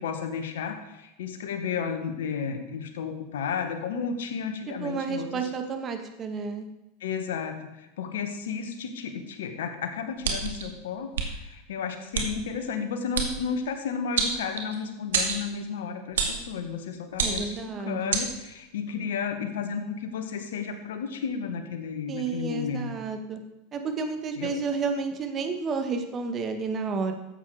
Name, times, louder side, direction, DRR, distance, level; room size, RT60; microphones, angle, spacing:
voice 1, 0.0-5.5 7.0-23.0 24.4-24.5, left 6 dB, 80° left, 7 dB, 1.6 m, -33 dB
voice 2, 4.8-6.7 17.2-18.2 22.1-23.4 23.7-27.1, right 4 dB, 35° right, 6 dB, 1.8 m, -31 dB
sound 1, 10.2-10.6 11.1-11.3 12.1-12.3 13.1-13.3 14.2-14.8 15.1-15.4 16.2-16.4 17.1-17.6 18.1-18.3, right 5 dB, 80° right, 2.1 m, -27 dB
13.5 x 8.1 x 5.0 m, 0.98 s
hypercardioid pair, 100°, 0 cm